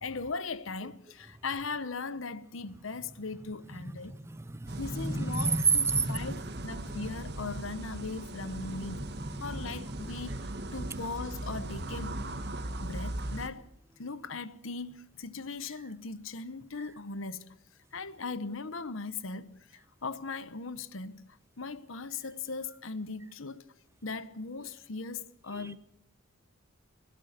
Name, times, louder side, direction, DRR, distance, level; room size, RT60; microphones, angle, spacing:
voice 1, 0.0-4.2 4.8-9.1 9.4-10.4 10.7-12.2 12.8-13.7 14.0-17.5 17.9-21.3 21.6-23.6 24.0-25.8, left 4 dB, 75° left, 1.0 m, -39 dB
voice 2, 4.1-6.3 25.5-25.8, right 4 dB, 15° right, 0.8 m, -29 dB
sound 1, 4.7-13.5, right 1 dB, 50° right, 1.6 m, -39 dB
25.5 x 16.5 x 6.7 m
head